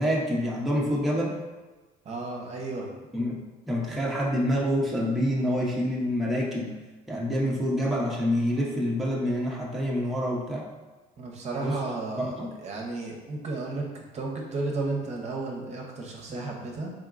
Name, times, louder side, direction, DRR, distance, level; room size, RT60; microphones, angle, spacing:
voice 1, 0.0-1.4 3.1-6.7 7.1-10.6 11.6-11.8 12.2-12.5, equal, ahead, -4 dB, 0.7 m, -27 dB
voice 2, 2.0-2.9 11.2-16.9, right 3 dB, 40° right, 0 dB, 0.7 m, -33 dB
3.7 x 3.6 x 2.4 m, 1.2 s
cardioid pair, 110°, 17 cm